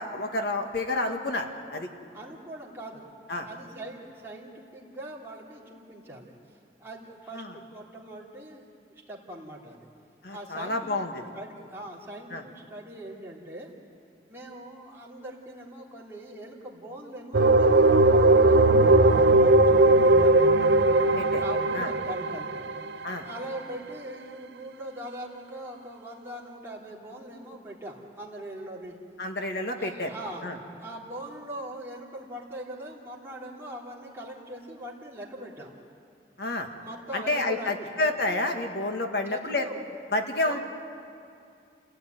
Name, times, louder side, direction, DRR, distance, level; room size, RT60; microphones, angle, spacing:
voice 1, 0.0-1.9 3.3-3.5 7.3-7.5 10.2-11.2 12.3-12.4 21.2-21.4 21.7-21.9 23.0-23.3 29.2-30.1 30.4-30.6 36.4-36.7 37.1-39.7 40.1-40.6, left 2 dB, 60° left, 4 dB, 1.8 m, -29 dB
voice 2, 2.1-3.1 3.4-6.3 6.8-9.9 10.3-11.0 11.3-13.7 14.2-20.3 21.4-22.7 23.2-29.0 29.7-30.5 30.8-35.7 36.8-37.9 39.3-39.9 40.4-40.6, right 1 dB, 15° right, -4 dB, 3.3 m, -41 dB
sound 1, 17.3-23.0, right 2 dB, 75° right, 0.7 m, -19 dB
28.0 x 16.5 x 9.3 m, 2.4 s
head